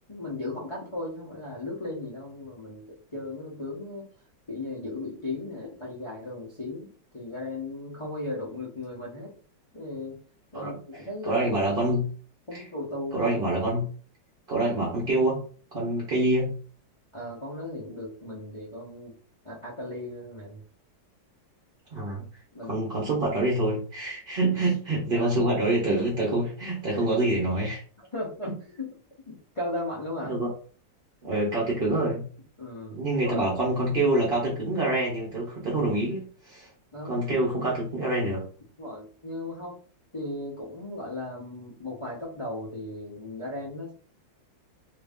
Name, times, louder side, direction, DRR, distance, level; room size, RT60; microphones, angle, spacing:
voice 1, 0.1-4.1 4.5-9.3 9.7-10.2 10.5-11.9 12.5-13.3 17.1-19.2 19.4-20.6 22.5-23.1 24.5-24.7 25.1-25.6 26.9-27.0 28.1-29.0 29.3-30.4 32.6-33.5 36.9-37.2 38.8-39.8 40.1-43.9, left 2 dB, 45° left, -6 dB, 0.4 m, -36 dB
voice 2, 11.2-12.1 12.5-12.6 13.1-13.9 14.5-15.4 15.7-16.5 21.9-22.2 22.7-27.8 28.5-28.6 30.3-30.5 31.2-32.2 32.9-36.7 37.0-38.4, right 2 dB, 45° right, -4 dB, 0.8 m, -26 dB
3.0 x 2.6 x 3.5 m, 0.42 s
omnidirectional pair, 2.1 m